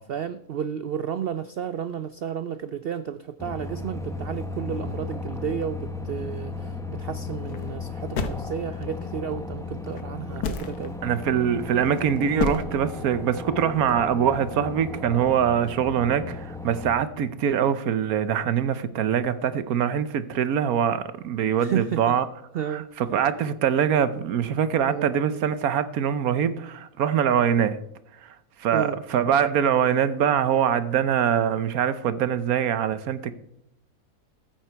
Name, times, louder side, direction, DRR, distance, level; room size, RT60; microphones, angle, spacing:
voice 1, 0.1-11.0 21.6-22.1 22.5-22.9 24.9-25.1 28.7-29.0, right 8 dB, 90° right, 14 dB, 0.5 m, -32 dB
sound 1, 3.4-16.9, left 3 dB, 5° left, 0.5 m, -35 dB
sound 2, 7.3-7.7 8.2-9.0 9.9-10.0 10.4-10.9 11.7-12.0 12.4-12.6, left 5 dB, 80° left, 1.6 m, -29 dB
voice 2, 11.0-22.3 22.7-27.8 28.2-28.3 28.6-33.3, right 8 dB, 70° right, 14 dB, 1.2 m, -23 dB
14.0 x 9.0 x 4.5 m, 0.81 s
omnidirectional pair, 1.6 m